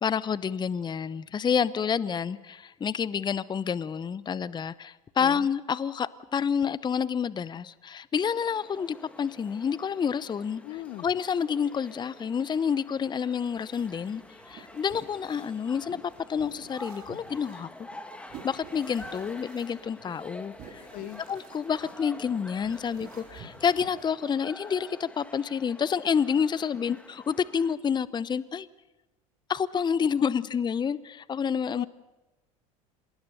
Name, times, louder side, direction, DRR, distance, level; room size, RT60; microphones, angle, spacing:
voice 1, 0.0-10.6 11.0-16.0 16.3-17.9 18.4-20.9 21.3-28.7 29.5-31.9, left 7 dB, 25° left, 0.7 m, -29 dB
sound 1, 8.2-27.8, left 1 dB, 5° left, 2.3 m, -48 dB
voice 2, 10.6-11.1 20.9-21.2 26.9-27.0 30.0-30.5 31.7-31.9, left 17 dB, 55° left, 0.8 m, -40 dB
sound 2, 13.5-23.9, right 6 dB, 55° right, 4.5 m, -51 dB
26.0 x 20.5 x 6.8 m
hypercardioid pair, 75°, 18 cm